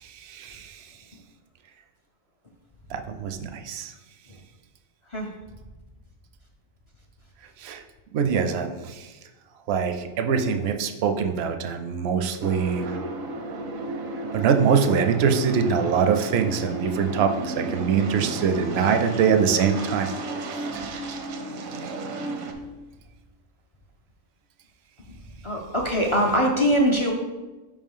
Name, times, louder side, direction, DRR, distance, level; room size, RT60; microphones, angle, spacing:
voice 1, 0.0-0.8 2.9-3.9 7.6-7.8 8.1-9.1 9.7-13.0 14.3-20.1 20.7-21.0, right 6 dB, 65° right, 7 dB, 0.7 m, -23 dB
sound 1, 12.4-22.5, right 2 dB, 85° right, 1.1 m, -32 dB
voice 2, 25.4-27.1, equal, 50° left, -1 dB, 0.3 m, -22 dB
5.1 x 3.7 x 5.3 m, 1.2 s
omnidirectional pair, 1.4 m